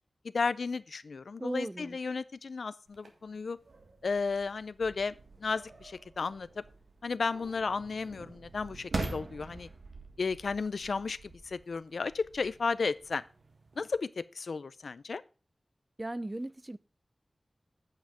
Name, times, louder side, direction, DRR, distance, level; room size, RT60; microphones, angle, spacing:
voice 1, 0.3-3.6 4.0-5.1 5.4-6.6 7.0-9.7 10.2-13.2 13.8-15.2, left 4 dB, 90° left, 0.4 m, -33 dB
voice 2, 1.4-2.0 16.0-16.8, right 1 dB, 25° right, 0.5 m, -37 dB
sound 1, 2.9-13.8, right 3 dB, 80° right, 1.6 m, -44 dB
9.0 x 5.7 x 4.9 m
wide cardioid pair, 60°, 0 cm